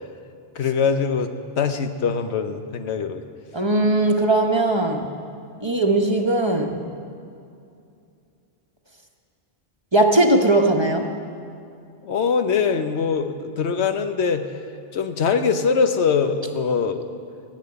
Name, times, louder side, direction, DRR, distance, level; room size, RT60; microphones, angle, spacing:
voice 1, 0.6-1.3 1.6-3.2 12.0-14.4 14.9-17.1, left 6 dB, 90° left, 8 dB, 1.1 m, -22 dB
voice 2, 3.5-5.1 5.6-6.8 9.9-11.1, right 2 dB, 25° right, 2 dB, 1.0 m, -19 dB
15.0 x 7.5 x 9.5 m, 2.5 s
omnidirectional pair, 1.1 m